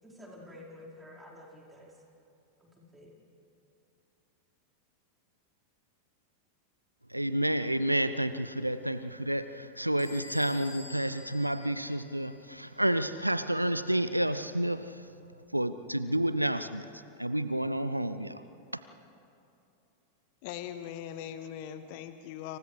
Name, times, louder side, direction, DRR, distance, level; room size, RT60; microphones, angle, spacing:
voice 1, 0.0-2.0 2.6-3.1, left 1 dB, 10° right, -4 dB, 4.8 m, -50 dB
voice 2, 7.1-15.1 15.5-16.9 17.2-18.4 18.7-18.8, right 1 dB, 90° right, 13 dB, 0.5 m, -30 dB
Bell / Squeak, 10.0-12.5, left 3 dB, 80° left, 5.0 m, -48 dB
voice 3, 20.4-22.6, left 10 dB, 45° left, 11 dB, 0.9 m, -40 dB
30.0 x 27.5 x 3.4 m, 2.7 s
figure-of-eight pair, 90°, 0 cm